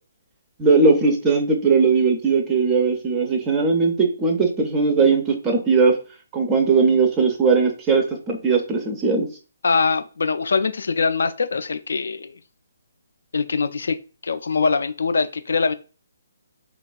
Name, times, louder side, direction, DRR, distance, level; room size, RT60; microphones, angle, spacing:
voice 1, 0.6-6.0 6.3-9.3, right 4 dB, 20° right, 3 dB, 0.4 m, -19 dB
voice 2, 9.6-12.3 13.3-14.0 14.2-15.7, left 4 dB, 60° left, 10 dB, 0.3 m, -22 dB
3.8 x 2.3 x 2.3 m, 0.35 s
figure-of-eight pair, 135°, 0 cm